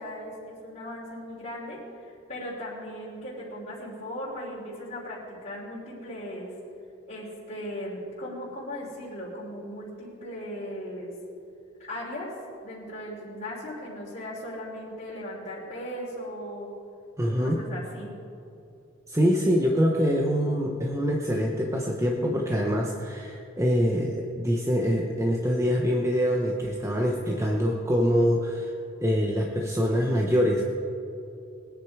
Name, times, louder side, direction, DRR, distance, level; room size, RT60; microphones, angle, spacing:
voice 1, 0.0-1.8 2.0-6.5 7.1-11.1 11.8-12.3 12.6-16.7 17.2-18.1, equal, 40° left, -9 dB, 3.3 m, -38 dB
voice 2, 17.2-17.6 19.1-28.7 29.0-30.7, equal, 15° right, 0 dB, 1.0 m, -24 dB
21.0 x 9.8 x 4.8 m, 2.8 s
head